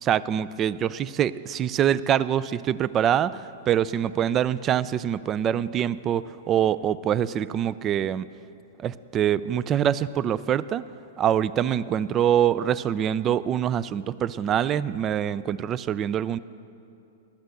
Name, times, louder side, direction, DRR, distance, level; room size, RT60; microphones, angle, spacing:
voice 1, 0.0-8.3 8.8-10.8 11.2-16.4, right 10 dB, 25° right, 17 dB, 0.3 m, -24 dB
11.5 x 8.1 x 7.7 m, 2.8 s
hypercardioid pair, 125°, 0 cm